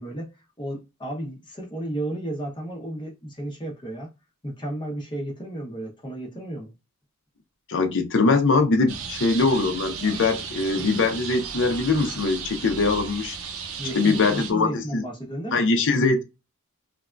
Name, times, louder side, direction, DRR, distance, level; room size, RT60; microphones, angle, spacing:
voice 1, 0.0-4.1 4.4-6.7 13.8-15.6, right 1 dB, 20° left, 0.8 m, -33 dB
voice 2, 7.7-13.4 13.9-15.0 15.5-16.2, left 3 dB, 60° left, 0.6 m, -22 dB
sound 1, 8.9-14.5, right 5 dB, 65° right, 0.7 m, -35 dB
3.4 x 2.2 x 2.4 m
head